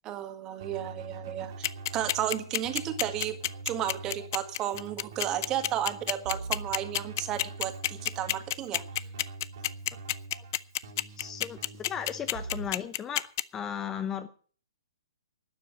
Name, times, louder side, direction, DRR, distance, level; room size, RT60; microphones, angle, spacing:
voice 1, 0.0-3.4 3.7-8.8, right 11 dB, 25° right, 9 dB, 1.9 m, -33 dB
Keyboard (musical), 0.6-12.7, right 3 dB, 55° right, 3.2 m, -44 dB
sound 1, 1.6-13.4, left 15 dB, 40° left, 0.5 m, -28 dB
voice 2, 11.2-11.6 11.8-13.3 13.5-14.3, left 8 dB, 15° left, 11 dB, 0.8 m, -35 dB
12.5 x 9.5 x 7.7 m, 0.43 s
figure-of-eight pair, 120°, 2 cm